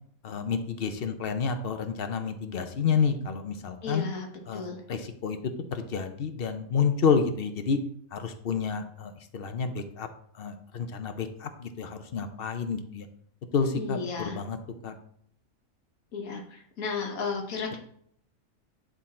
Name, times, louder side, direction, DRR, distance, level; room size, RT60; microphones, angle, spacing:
voice 1, 0.2-4.0 4.5-4.6 4.9-7.8 8.1-10.1 10.3-13.1 13.5-14.6 14.8-14.9 17.7-17.8, left 6 dB, 50° left, 8 dB, 0.8 m, -29 dB
voice 2, 3.8-4.3 4.5-4.8 13.8-14.4 16.1-17.8, left 5 dB, 80° left, 2 dB, 1.5 m, -33 dB
9.9 x 3.8 x 4.2 m, 0.67 s
omnidirectional pair, 1.5 m